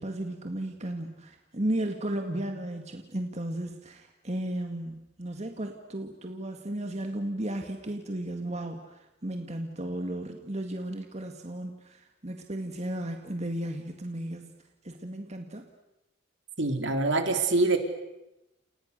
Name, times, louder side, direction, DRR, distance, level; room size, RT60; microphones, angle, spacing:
voice 1, 0.0-14.6 14.8-15.7, right 1 dB, 35° right, 4 dB, 2.0 m, -34 dB
voice 2, 16.6-17.8, right 3 dB, 65° right, 6 dB, 3.3 m, -25 dB
29.5 x 29.5 x 6.7 m, 0.92 s
head